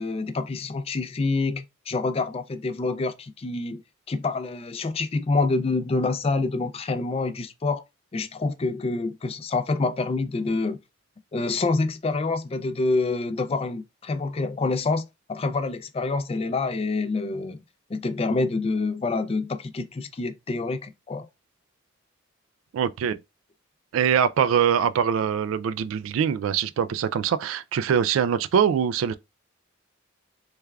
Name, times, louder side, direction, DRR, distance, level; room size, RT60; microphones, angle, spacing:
voice 1, 0.0-3.8 4.1-7.8 8.1-10.8 11.3-17.6 17.9-21.3, left 3 dB, 30° left, 0.4 m, -27 dB
voice 2, 22.7-23.2 23.9-29.1, right 8 dB, 70° right, 0.3 m, -23 dB
3.3 x 3.3 x 2.3 m
head